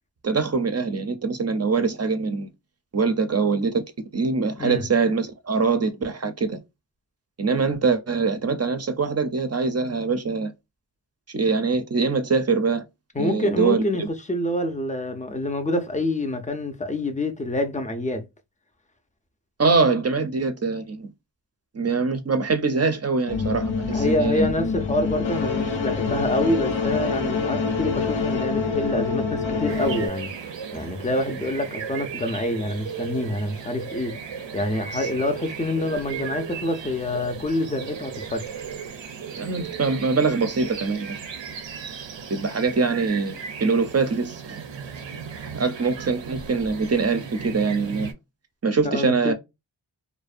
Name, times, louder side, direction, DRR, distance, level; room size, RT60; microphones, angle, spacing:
voice 1, 0.2-2.5 2.9-3.8 4.1-6.6 7.4-10.5 11.3-12.8 13.2-14.1 19.6-21.1 21.7-24.5 34.9-35.1 39.4-41.2 42.3-44.6 45.0-45.1 45.4-48.1 48.6-49.3, right 4 dB, 35° right, 0.5 m, -23 dB
voice 2, 13.1-18.2 23.9-30.3 30.7-34.2 34.5-38.4 48.8-49.3, left 1 dB, 20° left, 0.4 m, -26 dB
sound 1, 23.3-30.1, left 4 dB, 85° left, 0.6 m, -26 dB
sound 2, 29.7-48.1, right 6 dB, 80° right, 0.6 m, -36 dB
2.5 x 2.1 x 2.4 m
wide cardioid pair, 50°, 44 cm